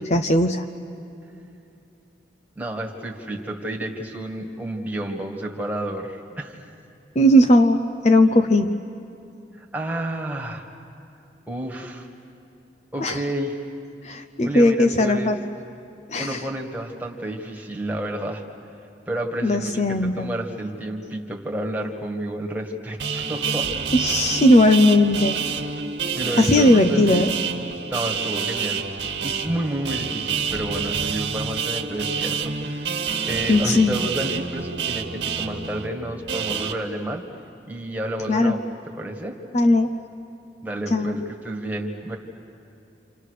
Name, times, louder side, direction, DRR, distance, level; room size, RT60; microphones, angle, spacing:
voice 1, 0.1-0.6 7.2-7.8 8.0-8.8 13.0-13.2 14.0-15.4 16.1-16.4 19.4-20.3 23.9-25.4 26.4-27.3 33.5-34.0 38.3-38.5 39.5-39.9 40.9-41.2, left 1 dB, 40° left, 8 dB, 0.7 m, -18 dB
voice 2, 2.6-6.6 9.6-10.6 11.5-12.1 12.9-13.6 14.4-15.3 16.2-18.4 19.1-23.7 25.4-25.8 26.1-27.3 27.9-28.8 29.2-32.4 32.6-37.2 37.7-38.6 39.0-39.4 40.6-42.2, right 1 dB, 10° right, 0 dB, 1.9 m, -30 dB
sound 1, 23.0-36.7, right 6 dB, 75° right, 1.7 m, -28 dB
28.5 x 27.5 x 6.6 m, 2.6 s
head